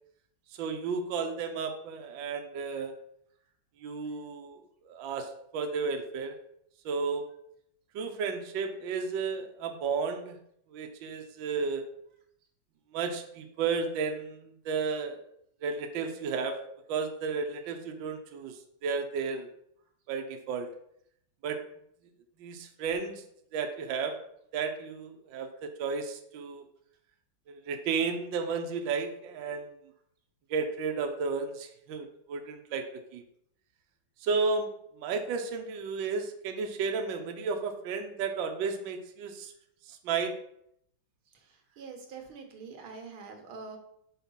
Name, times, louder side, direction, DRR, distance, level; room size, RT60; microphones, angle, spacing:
voice 1, 0.6-2.9 3.8-4.6 4.8-6.4 6.8-7.3 7.9-10.4 10.7-11.8 12.9-15.2 15.6-16.6 16.9-19.5 20.1-20.7 21.4-21.6 22.4-23.2 23.5-24.1 24.5-26.7 27.5-29.7 30.5-32.9 33.1-33.2 34.2-34.7 35.0-39.5 39.9-40.4, right 5 dB, 70° right, 4 dB, 1.5 m, -33 dB
voice 2, 41.3-43.8, right 4 dB, 90° right, 4 dB, 2.0 m, -45 dB
5.8 x 5.0 x 5.5 m, 0.72 s
omnidirectional pair, 2.3 m